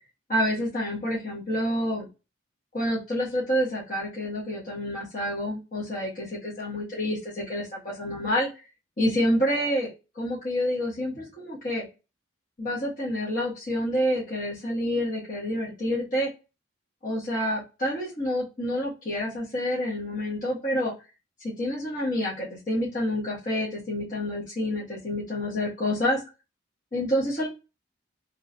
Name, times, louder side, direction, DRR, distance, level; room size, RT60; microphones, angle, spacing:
voice 1, 0.3-2.1 2.7-8.5 9.0-11.9 12.6-16.3 17.0-20.9 21.4-26.2 26.9-27.5, equal, 45° left, -7 dB, 1.3 m, -28 dB
3.1 x 2.8 x 2.6 m, 0.27 s
head